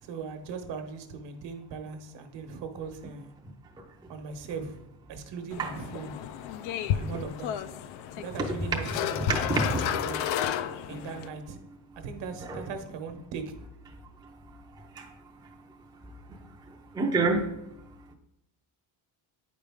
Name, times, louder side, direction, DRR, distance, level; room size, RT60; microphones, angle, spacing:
voice 1, 0.0-3.3 4.1-4.8 5.1-6.1 6.9-7.6 8.2-9.5 9.8-10.2 10.9-11.6 12.0-13.5, right 5 dB, 60° right, 7 dB, 1.1 m, -39 dB
sound 1, 5.5-11.3, left 10 dB, 70° left, 0.6 m, -32 dB
voice 2, 9.3-9.8 15.0-15.1 16.9-17.5, right 3 dB, 10° right, 0 dB, 0.5 m, -26 dB
8.9 x 5.1 x 3.5 m, 0.87 s
cardioid pair, 155°, 49 cm